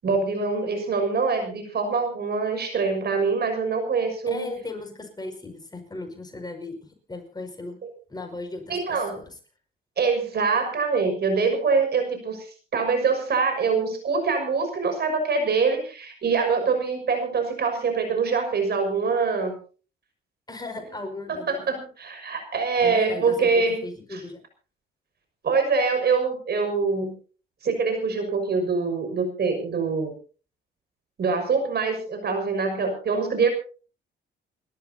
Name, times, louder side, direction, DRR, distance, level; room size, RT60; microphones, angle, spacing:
voice 1, 0.0-4.5 8.7-9.2 10.0-19.6 21.3-23.8 24.1-24.2 25.4-27.1 27.6-30.1 31.2-33.5, right 4 dB, 55° right, 5 dB, 6.2 m, -24 dB
voice 2, 4.3-7.8 8.1-9.2 20.5-21.8 22.8-24.4, left 2 dB, 20° left, 4 dB, 5.8 m, -37 dB
30.0 x 13.5 x 2.8 m, 0.39 s
cardioid pair, 90°, 20 cm